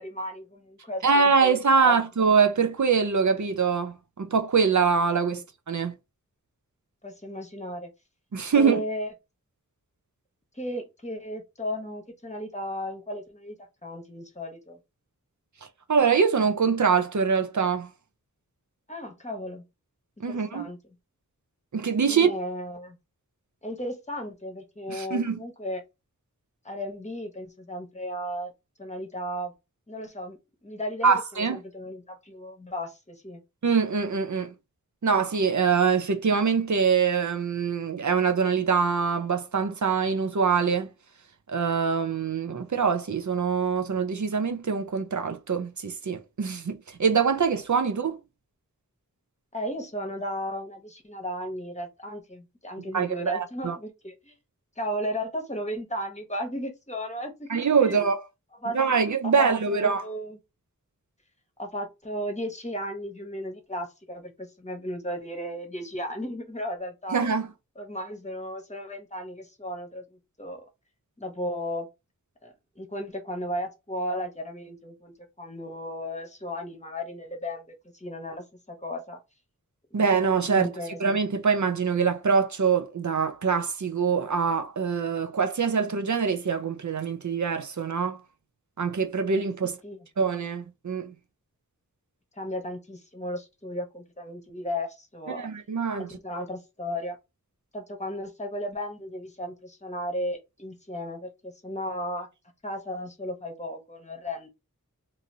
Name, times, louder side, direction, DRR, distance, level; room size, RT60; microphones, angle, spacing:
voice 1, 0.0-2.0 5.3-5.4 7.0-7.9 8.6-9.1 10.5-13.6 13.8-14.8 18.9-19.6 20.2-20.8 22.1-23.0 23.6-25.8 26.6-28.5 28.8-29.5 29.9-33.4 49.5-54.4 54.8-58.0 58.6-60.4 61.6-67.2 67.8-70.7 71.2-71.9 72.4-79.2 79.9-80.1 80.5-81.0 89.8-90.1 92.4-95.5 96.0-97.2 97.7-102.3 102.6-104.5, equal, 20° left, 1.0 m, -35 dB
voice 2, 1.0-5.4 5.7-5.9 8.3-8.8 15.9-17.9 20.2-20.6 21.7-22.3 24.9-25.4 31.0-31.6 33.6-34.5 35.0-40.9 41.5-48.2 52.9-53.8 57.5-58.2 58.7-60.0 67.1-67.5 79.9-80.7 81.0-88.2 88.8-89.8 90.2-91.1 95.4-96.1, right 5 dB, 55° right, 0.6 m, -24 dB
2.9 x 2.6 x 2.7 m
wide cardioid pair, 55°, 34 cm